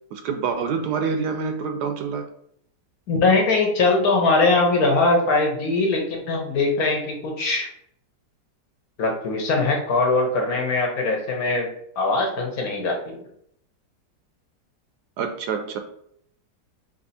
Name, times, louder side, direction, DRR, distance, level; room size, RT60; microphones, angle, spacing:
voice 1, 0.1-2.2 15.2-15.8, right 5 dB, 75° right, 6 dB, 1.1 m, -26 dB
voice 2, 3.1-7.7 9.0-11.7 12.0-13.3, left 3 dB, 60° left, 1 dB, 1.2 m, -21 dB
3.5 x 2.8 x 4.1 m, 0.71 s
omnidirectional pair, 1.9 m